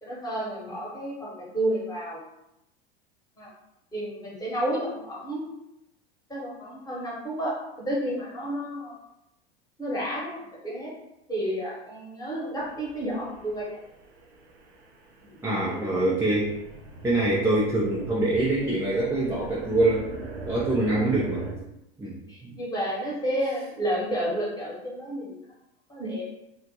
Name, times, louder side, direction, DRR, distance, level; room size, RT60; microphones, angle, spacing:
voice 1, 0.0-2.2 3.4-3.5 3.9-5.5 6.3-9.0 9.8-10.9 11.3-13.8 15.2-16.1 20.8-20.9 22.3-25.4 25.9-26.3, right 1 dB, 10° left, -6 dB, 1.0 m, -31 dB
sound 1, 12.6-21.5, right 3 dB, 85° right, 0.5 m, -41 dB
voice 2, 15.4-16.5 17.0-20.1 20.5-21.5 22.0-22.5, right 2 dB, 10° right, -6 dB, 0.4 m, -24 dB
2.4 x 2.1 x 2.8 m, 0.87 s
figure-of-eight pair, 80°, 32 cm